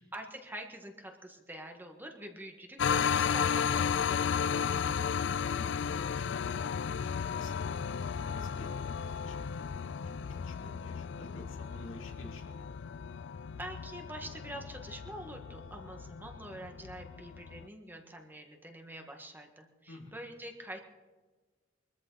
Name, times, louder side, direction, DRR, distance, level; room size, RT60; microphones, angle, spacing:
voice 1, 0.0-4.4 13.6-20.8, right 1 dB, 10° right, 3 dB, 1.7 m, -45 dB
sound 1, 2.8-17.7, left 7 dB, 65° left, 0.4 m, -34 dB
voice 2, 4.7-5.1 5.4-7.7 8.0-8.8 9.1-12.7 19.9-20.1, left 1 dB, 85° left, 1 dB, 2.8 m, -51 dB
23.0 x 14.0 x 4.1 m, 1.3 s
head